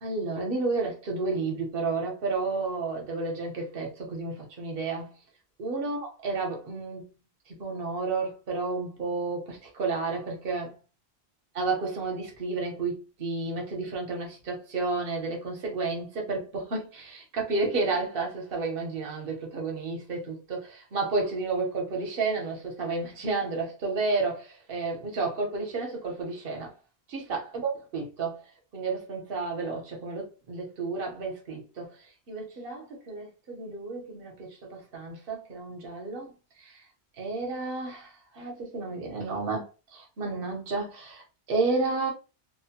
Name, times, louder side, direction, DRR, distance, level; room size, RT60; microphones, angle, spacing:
voice 1, 0.0-5.1 5.6-7.1 7.5-10.7 11.6-26.7 27.1-28.4 28.7-32.0 32.3-36.3 36.6-36.8 37.2-42.1, right 3 dB, 60° right, 1.0 m, -31 dB
2.7 x 2.1 x 2.8 m
omnidirectional pair, 1.1 m